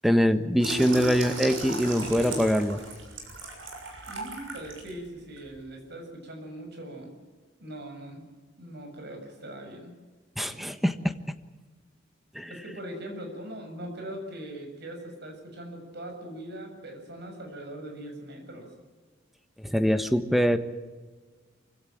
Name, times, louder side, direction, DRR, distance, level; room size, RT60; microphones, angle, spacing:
voice 1, 0.0-2.8 10.4-11.1 12.3-12.5 19.6-20.6, equal, ahead, 10 dB, 1.3 m, -23 dB
Water tap faucet / Sink (filling or washing), 0.6-4.9 5.4-5.6, right 2 dB, 75° right, 6.9 m, -35 dB
voice 2, 4.0-7.1 7.6-8.2 8.6-9.9 10.5-10.6 12.5-18.7, right 1 dB, 60° right, 3 dB, 7.1 m, -41 dB
24.5 x 16.5 x 9.1 m, 1.4 s
head